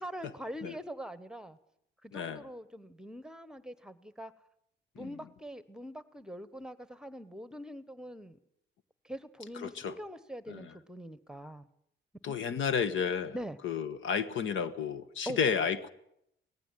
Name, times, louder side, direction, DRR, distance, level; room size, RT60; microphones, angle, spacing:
voice 1, 0.0-1.6 2.0-4.3 4.9-8.4 9.0-11.7 12.3-12.8 13.3-13.6 15.3-15.4, equal, 5° right, 14 dB, 1.2 m, -43 dB
voice 2, 2.1-2.4 5.0-5.1 9.6-9.9 10.5-10.7 12.2-13.3 13.6-15.9, left 6 dB, 75° left, 13 dB, 1.3 m, -32 dB
18.5 x 15.0 x 9.3 m, 0.75 s
cardioid pair, 90°, 20 cm